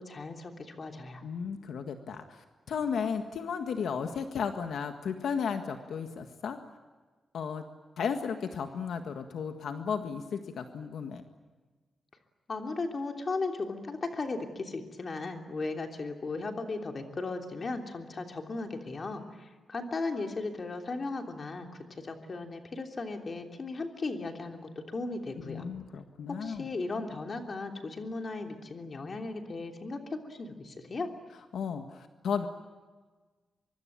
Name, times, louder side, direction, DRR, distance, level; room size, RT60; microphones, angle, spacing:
voice 1, 0.0-1.2 12.5-25.7 26.3-31.1, left 3 dB, 35° left, 4 dB, 3.1 m, -36 dB
voice 2, 1.2-6.6 7.3-7.6 8.0-11.2 25.4-26.7 31.5-32.5, left 6 dB, 75° left, 6 dB, 1.7 m, -34 dB
24.5 x 24.0 x 8.7 m, 1.4 s
wide cardioid pair, 150°, 0 cm